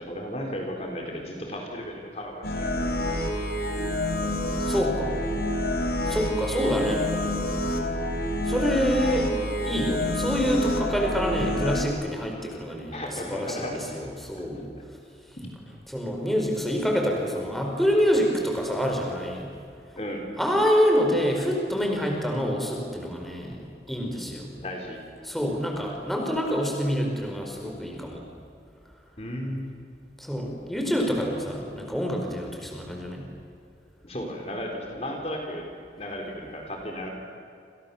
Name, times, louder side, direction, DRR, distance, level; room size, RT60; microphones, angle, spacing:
voice 1, 0.0-2.9 12.9-14.1 15.4-15.5 20.0-20.3 24.6-25.0 29.2-29.7 34.0-35.7 36.0-37.1, equal, 35° left, 1 dB, 3.9 m, -34 dB
sound 1, 2.4-11.9, left 1 dB, 60° left, 4.0 m, -28 dB
voice 2, 4.6-5.1 6.1-7.0 8.5-9.3 9.6-13.0 13.3-14.7 15.9-19.5 20.4-23.6 23.9-24.5 25.2-28.2 30.2-33.2, equal, ahead, 0 dB, 4.5 m, -26 dB
28.5 x 28.5 x 7.1 m, 2.4 s
head